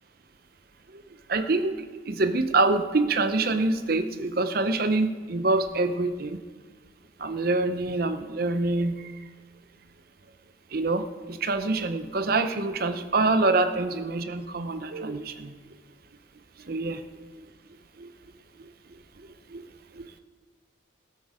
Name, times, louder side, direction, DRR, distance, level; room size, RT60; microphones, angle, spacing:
voice 1, 1.3-1.7 2.1-6.4 7.2-9.1 10.7-15.5 16.7-17.0 18.0-18.1 19.5-19.6 20.0-20.1, right 2 dB, 50° right, 9 dB, 0.7 m, -25 dB
18.0 x 8.5 x 4.9 m, 1.5 s
head